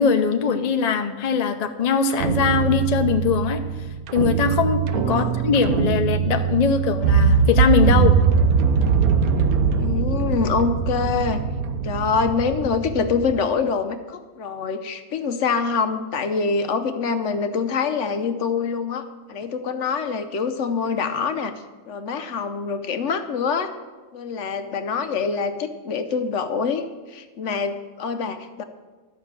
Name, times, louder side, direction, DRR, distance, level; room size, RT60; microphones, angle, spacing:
voice 1, 0.0-3.6 4.1-8.1, left 6 dB, 40° left, 6 dB, 0.6 m, -21 dB
sound 1, 2.1-13.4, right 6 dB, 85° right, 1.2 m, -21 dB
voice 2, 9.7-11.4 11.8-21.5 21.9-23.7 24.1-28.6, left 5 dB, 65° left, 9 dB, 1.0 m, -25 dB
12.5 x 5.8 x 7.2 m, 1.3 s
omnidirectional pair, 1.5 m